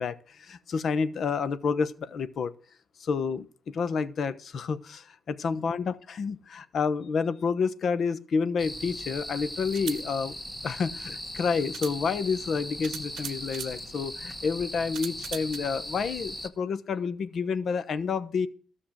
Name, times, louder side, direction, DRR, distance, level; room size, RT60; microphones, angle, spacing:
voice 1, 0.0-2.5 3.0-10.3 10.6-18.5, left 5 dB, 55° left, 14 dB, 1.0 m, -29 dB
sound 1, 8.6-16.5, left 1 dB, 10° left, 1.7 m, -39 dB
sound 2, 8.6-8.7 9.6-10.0 11.2-11.3 11.7-12.0 12.8-13.8 14.9-15.6, right 10 dB, 75° right, 0.8 m, -39 dB
13.0 x 6.5 x 7.4 m, 0.42 s
cardioid pair, 90°, 0 cm